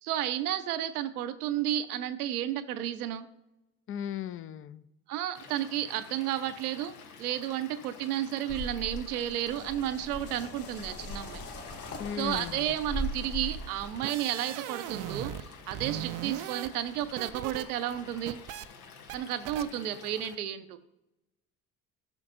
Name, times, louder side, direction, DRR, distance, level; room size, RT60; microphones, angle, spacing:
voice 1, 0.0-3.3 5.1-6.9 7.2-11.4 12.2-15.3 15.7-18.4 19.1-20.8, right 12 dB, 75° right, 11 dB, 0.8 m, -32 dB
voice 2, 3.9-4.8 12.0-12.7, left 9 dB, 30° left, 15 dB, 0.6 m, -36 dB
Stream / Liquid, 5.3-20.3, left 6 dB, 75° left, 1.1 m, -51 dB
sound 1, 8.5-13.9, left 1 dB, 50° left, 2.4 m, -39 dB
sound 2, 13.8-15.4 15.7-17.6 17.9-18.7 19.1-19.2 19.5-19.6, right 12 dB, 45° right, 0.5 m, -38 dB
15.0 x 5.9 x 2.6 m, 0.92 s
figure-of-eight pair, 55°, 45 cm